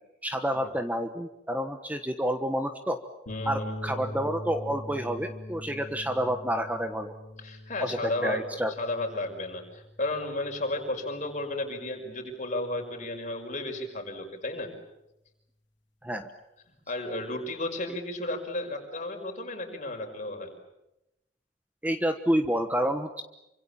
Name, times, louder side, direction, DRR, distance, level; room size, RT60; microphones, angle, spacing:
voice 1, 0.2-3.0 3.4-7.2 7.8-8.7 16.0-16.3 21.8-23.2, equal, 10° right, 7 dB, 1.2 m, -29 dB
sound 1, 3.3-11.7, left 1 dB, 80° left, 3.4 m, -42 dB
voice 2, 3.3-4.0 7.4-8.4 8.8-14.7 16.9-20.5, left 2 dB, 40° left, 3 dB, 5.7 m, -33 dB
28.0 x 25.5 x 7.2 m, 0.89 s
head